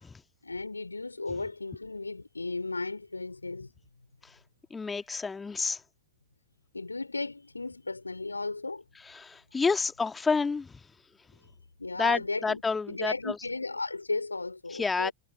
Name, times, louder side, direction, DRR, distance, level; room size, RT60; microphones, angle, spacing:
voice 1, 0.4-3.7 6.7-8.8 11.8-12.6 12.9-15.1, left 3 dB, 80° left, 4.6 m, -35 dB
voice 2, 4.7-5.8 9.0-10.8 12.0-13.3 14.7-15.1, left 4 dB, 15° left, 1.7 m, -29 dB
figure-of-eight pair, 90°, 0 cm